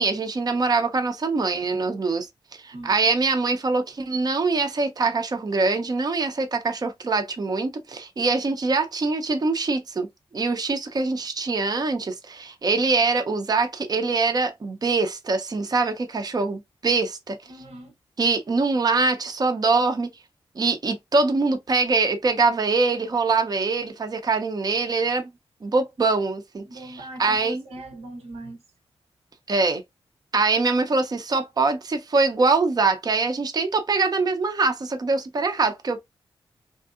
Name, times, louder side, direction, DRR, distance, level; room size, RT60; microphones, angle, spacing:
voice 1, 0.0-2.3 2.5-10.1 10.3-17.4 18.2-20.1 20.6-25.3 25.6-27.6 29.5-29.8 30.3-36.0, right 3 dB, 40° right, 0.6 m, -23 dB
voice 2, 17.5-17.9 26.7-28.6, right 2 dB, 85° right, 0.9 m, -40 dB
3.2 x 2.7 x 2.4 m
cardioid pair, 60°, 10 cm